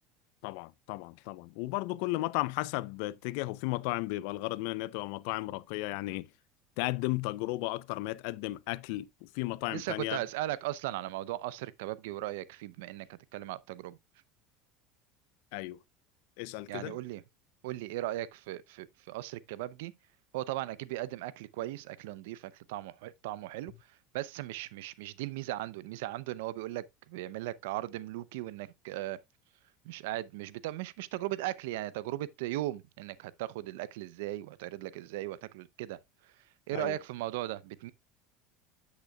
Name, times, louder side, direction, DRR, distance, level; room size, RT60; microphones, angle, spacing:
voice 1, 0.4-6.3 6.8-10.2 15.5-15.8 16.4-17.0 36.7-37.0, left 20 dB, 75° left, 0.5 m, -34 dB
voice 2, 9.7-14.0 16.7-17.2 17.6-19.9 20.3-29.2 29.8-36.3 36.7-37.9, right 15 dB, 80° right, 0.6 m, -38 dB
8.9 x 8.1 x 2.3 m
supercardioid pair, 115°, 0 cm